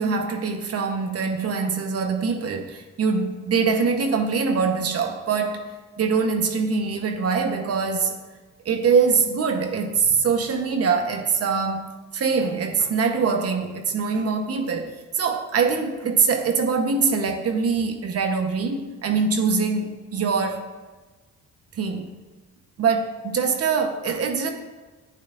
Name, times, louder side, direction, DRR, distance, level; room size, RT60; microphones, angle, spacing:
voice 1, 0.0-5.6 6.0-8.2 8.6-20.7 21.8-22.1 22.8-24.5, right 5 dB, 55° right, 4 dB, 1.0 m, -23 dB
10.5 x 8.8 x 2.5 m, 1.3 s
cardioid pair, 90°, 30 cm